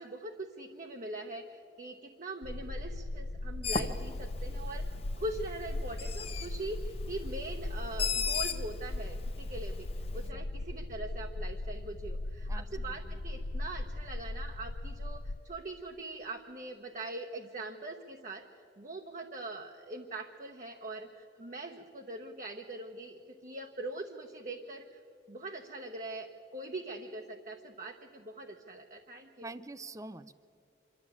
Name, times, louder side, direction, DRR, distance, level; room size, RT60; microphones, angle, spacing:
voice 1, 0.0-9.9 10.1-18.4 18.8-25.0 25.3-29.5, right 2 dB, 45° right, 2 dB, 1.0 m, -42 dB
sound 1, 2.4-15.4, left 2 dB, 55° left, 0.5 m, -38 dB
Bird, 3.6-10.3, left 6 dB, 35° left, 0.9 m, -38 dB
voice 2, 12.5-13.2 29.4-30.3, right 2 dB, 20° right, 14 dB, 0.6 m, -46 dB
26.5 x 12.0 x 8.5 m, 2.6 s
head